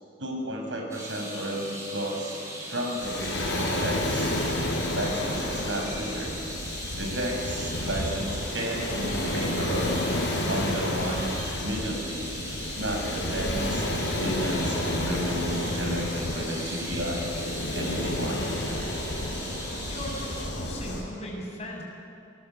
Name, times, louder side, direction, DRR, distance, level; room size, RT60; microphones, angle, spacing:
voice 1, 0.2-2.4 2.7-4.4 4.9-6.3 7.0-12.3 12.8-17.3 17.7-18.5, equal, 85° right, 2 dB, 6.2 m, -32 dB
sound 1, 0.9-20.4, right 1 dB, 15° right, 7.2 m, -39 dB
Waves surf, 3.0-21.0, left 1 dB, 70° left, 6.2 m, -30 dB
voice 2, 19.9-21.8, left 1 dB, 35° left, -2 dB, 7.4 m, -38 dB
28.0 x 21.5 x 8.6 m, 2.6 s
head